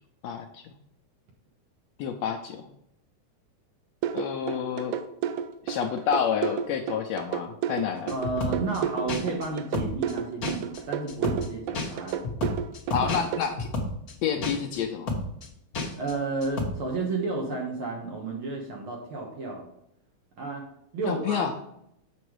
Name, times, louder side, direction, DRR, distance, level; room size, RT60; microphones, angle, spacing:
voice 1, 0.2-0.7 2.0-2.7 4.1-5.0 5.6-8.1 12.9-13.7 14.2-15.2 21.1-21.5, left 7 dB, 80° left, 5 dB, 1.6 m, -29 dB
sound 1, 4.0-13.4, right 9 dB, 85° right, 2.1 m, -31 dB
sound 2, 8.1-8.8 9.1-9.5 9.7-10.1 10.4-10.8 11.1-11.5 11.7-14.1 14.4-14.8 15.1-15.5 15.7-16.1 16.4-16.7, left 2 dB, 55° left, 1.0 m, -31 dB
voice 2, 8.1-12.2 16.0-19.7 20.4-20.6 20.9-21.6, right 3 dB, 55° right, 0 dB, 1.6 m, -32 dB
6.8 x 6.4 x 4.6 m, 0.75 s
omnidirectional pair, 3.5 m